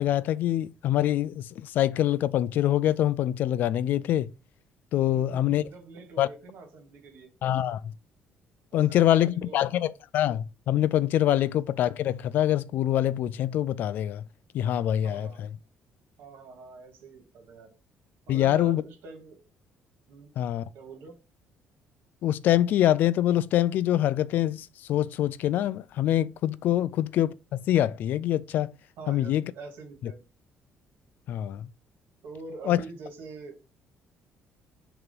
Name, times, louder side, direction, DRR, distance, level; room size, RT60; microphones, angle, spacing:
voice 1, 0.0-4.3 4.9-5.6 6.2-6.3 7.4-7.9 8.7-14.2 14.5-15.5 18.3-18.8 20.4-20.6 22.2-28.7 29.1-29.4 30.0-30.1 31.3-31.7 32.6-32.8, left 12 dB, 55° left, 0.3 m, -25 dB
voice 2, 5.1-7.3 8.7-9.7 15.0-15.4 16.2-17.7 18.3-19.4 20.1-20.3 20.7-21.1 29.0-30.2 32.2-33.6, right 4 dB, 70° right, 2.2 m, -44 dB
6.7 x 3.0 x 5.2 m
cardioid pair, 180°, 4 cm